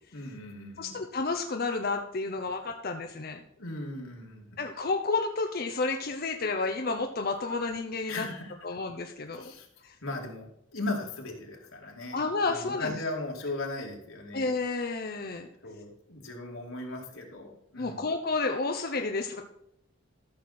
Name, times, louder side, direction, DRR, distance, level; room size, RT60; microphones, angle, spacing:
voice 1, 0.1-1.0 3.6-4.6 8.1-8.5 9.2-9.7 10.0-14.5 15.6-18.0, left 2 dB, 85° left, 0 dB, 2.6 m, -38 dB
voice 2, 0.8-3.4 4.6-8.3 8.6-9.5 9.8-9.9 12.1-13.0 14.3-15.5 17.8-19.4, left 3 dB, 45° left, 4 dB, 0.7 m, -31 dB
13.5 x 6.4 x 4.3 m, 0.79 s
head